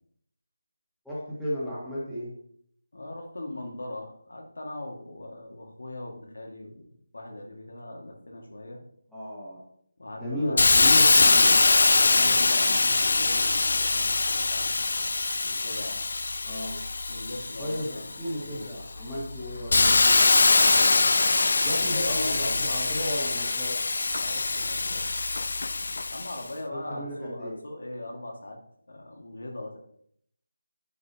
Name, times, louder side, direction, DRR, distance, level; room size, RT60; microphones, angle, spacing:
voice 1, 1.0-2.4 9.1-9.7 10.2-11.7 16.4-16.8 17.6-21.0 21.6-23.8 26.7-27.6, equal, ahead, -11 dB, 1.8 m, -34 dB
voice 2, 2.9-8.8 10.0-10.9 11.8-14.7 15.4-16.0 17.1-18.1 18.4-18.7 21.6-22.8 24.2-25.1 26.1-28.6 28.9-29.8, left 1 dB, 80° left, 1 dB, 2.1 m, -40 dB
Hiss, 10.6-18.1 18.7-26.4, left 3 dB, 60° left, 0.3 m, -23 dB
9.3 x 5.3 x 3.0 m, 0.68 s
figure-of-eight pair, 170°, 0 cm